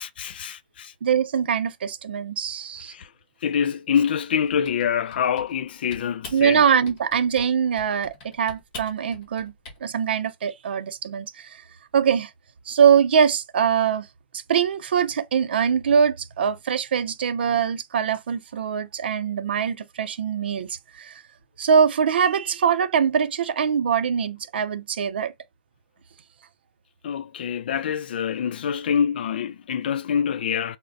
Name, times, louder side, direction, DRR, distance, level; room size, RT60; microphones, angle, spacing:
voice 1, 0.0-0.9 2.9-3.1 3.4-6.6 27.0-30.8, left 8 dB, 65° left, 0.4 m, -25 dB
voice 2, 1.0-2.9 6.3-9.5 9.8-11.6 11.9-12.3 12.7-14.1 14.5-21.2 21.6-25.3, right 7 dB, 75° right, 0.5 m, -22 dB
Typing, 4.4-5.6 5.9-6.4 6.8-7.5 7.8-9.8, left 3 dB, 35° left, 1.3 m, -42 dB
4.1 x 2.1 x 2.5 m
hypercardioid pair, 150°, 6 cm